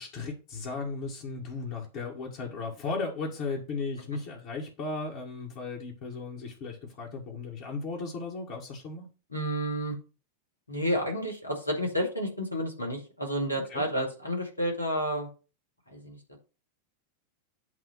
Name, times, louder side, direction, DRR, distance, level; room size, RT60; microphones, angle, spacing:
voice 1, 0.0-9.1 13.5-13.9, left 4 dB, 45° left, 1.9 m, -36 dB
voice 2, 9.3-9.9 10.7-15.3 15.9-16.2, equal, 85° left, 2.1 m, -30 dB
8.3 x 2.8 x 5.8 m
figure-of-eight pair, 90°, 0 cm